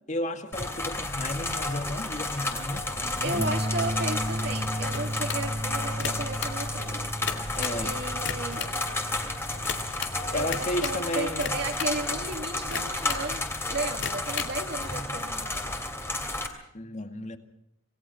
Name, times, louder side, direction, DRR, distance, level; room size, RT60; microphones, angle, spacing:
voice 1, 0.1-3.5 7.6-7.9 10.0-11.5 16.7-17.4, left 1 dB, 35° left, 7 dB, 2.1 m, -33 dB
sound 1, 0.5-16.5, left 2 dB, 10° left, 2.7 m, -32 dB
voice 2, 3.2-7.1 7.8-8.7 10.3-15.7, right 2 dB, 50° right, 3 dB, 2.3 m, -34 dB
sound 2, 3.4-10.0, equal, 15° right, 0.8 m, -34 dB
sound 3, 4.9-5.5 5.9-6.6 7.1-7.9 8.1-8.8 9.6-10.2 10.5-11.0 11.4-12.0 12.7-13.3 13.9-14.6, left 7 dB, 55° left, 2.5 m, -35 dB
27.0 x 19.0 x 5.8 m, 0.78 s
head